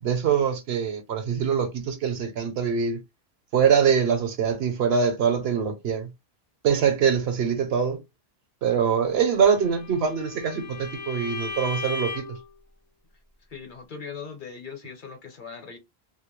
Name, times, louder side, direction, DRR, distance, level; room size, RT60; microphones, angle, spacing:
voice 1, 0.0-3.0 3.5-6.1 6.6-8.0 8.6-12.4, right 7 dB, 75° right, 0.9 m, -23 dB
Bowed string instrument, 9.4-12.5, left 4 dB, 20° left, 0.5 m, -36 dB
voice 2, 13.5-15.8, left 6 dB, 55° left, 0.8 m, -39 dB
2.2 x 2.1 x 3.0 m
omnidirectional pair, 1.1 m